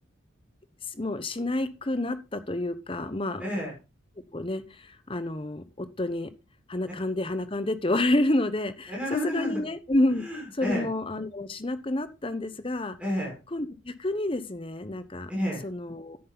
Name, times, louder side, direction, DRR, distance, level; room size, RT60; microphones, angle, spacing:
voice 1, 0.9-3.4 4.3-6.3 6.7-10.2 10.6-13.0 13.5-15.3 15.6-16.2, left 1 dB, 25° left, 12 dB, 0.9 m, -29 dB
voice 2, 3.4-3.7 8.9-9.6 10.2-10.9 13.0-13.4 15.3-15.7, left 1 dB, 5° right, -3 dB, 6.3 m, -30 dB
10.5 x 8.7 x 4.0 m, 0.27 s
head